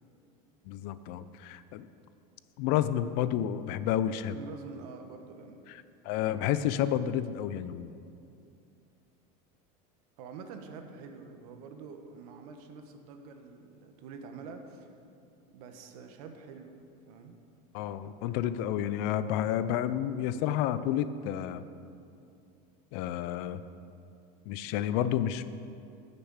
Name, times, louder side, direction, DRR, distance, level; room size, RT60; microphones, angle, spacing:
voice 1, 0.7-1.9 2.6-4.4 6.0-7.9 17.7-21.6 22.9-23.6 24.5-25.5, left 11 dB, 60° left, 13 dB, 0.5 m, -30 dB
voice 2, 4.3-5.7 10.2-14.9 15.5-16.7 17.1-17.4, right 4 dB, 75° right, 6 dB, 1.3 m, -46 dB
9.0 x 6.8 x 8.1 m, 2.5 s
supercardioid pair, 145°, 19 cm